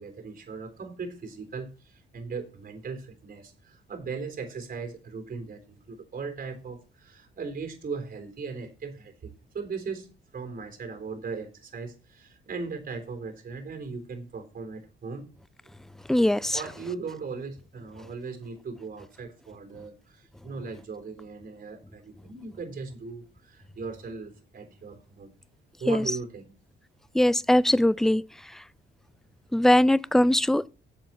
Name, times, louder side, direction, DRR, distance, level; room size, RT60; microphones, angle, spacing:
voice 1, 0.0-15.3 16.2-25.3 25.8-26.5, right 4 dB, 45° right, 3.5 m, -38 dB
voice 2, 16.1-16.6 25.9-26.0 27.1-28.2 29.5-30.7, left 1 dB, ahead, 0.4 m, -21 dB
7.6 x 7.0 x 7.3 m
cardioid pair, 90°, 20 cm